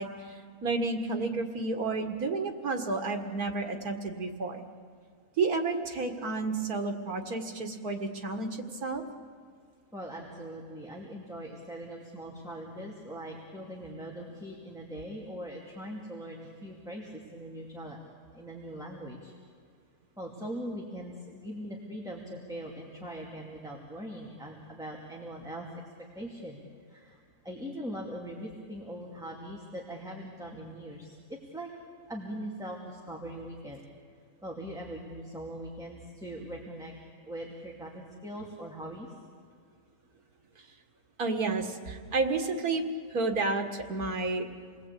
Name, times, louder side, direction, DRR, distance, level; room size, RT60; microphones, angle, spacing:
voice 1, 0.0-4.6 5.4-9.0 41.2-42.8 43.1-44.5, right 3 dB, 90° right, 5 dB, 2.2 m, -31 dB
voice 2, 9.9-19.3 20.2-25.8 26.1-26.6 26.9-31.7 32.1-33.8 34.4-36.9 37.2-39.1, equal, ahead, -2 dB, 2.5 m, -41 dB
28.5 x 19.5 x 8.4 m, 2.1 s
omnidirectional pair, 1.5 m